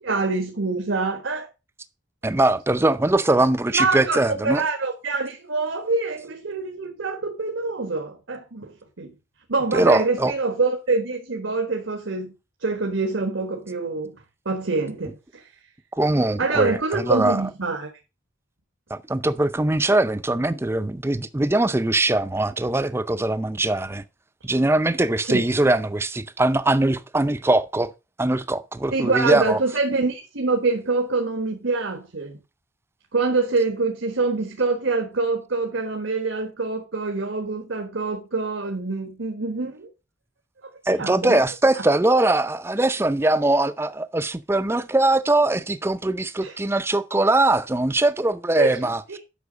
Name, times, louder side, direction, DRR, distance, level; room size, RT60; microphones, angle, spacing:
voice 1, 0.0-1.5 3.7-9.1 9.5-12.3 12.6-14.2 14.4-15.5 16.4-17.9 25.2-25.4 28.9-32.4 33.1-39.9 40.6-40.7 41.0-41.4 41.7-41.8 46.4-46.6 48.6-49.2, right 3 dB, 80° right, 1.4 m, -25 dB
voice 2, 2.2-4.6 9.7-10.3 16.0-17.5 18.9-24.0 24.4-27.9 28.2-29.6 40.9-49.2, right 2 dB, 15° right, 0.4 m, -21 dB
8.3 x 5.9 x 5.1 m
head